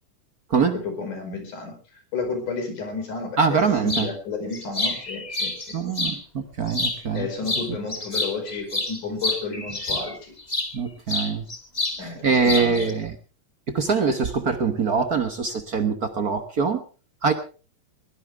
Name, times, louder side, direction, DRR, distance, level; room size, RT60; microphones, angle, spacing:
voice 1, 0.7-1.7 2.1-5.8 7.1-10.3 12.0-13.0, left 4 dB, 75° left, 5 dB, 6.4 m, -32 dB
voice 2, 3.4-4.1 5.7-6.2 6.6-7.3 10.7-11.4 12.2-13.1 13.7-16.8 17.2-17.3, right 5 dB, 65° right, 8 dB, 0.9 m, -23 dB
sound 1, 3.9-4.1 4.5-6.2 6.7-7.2 7.5-10.7 11.1-12.0 12.3-12.9, left 2 dB, 15° left, 1.8 m, -28 dB
22.0 x 17.0 x 3.5 m, 0.37 s
omnidirectional pair, 3.6 m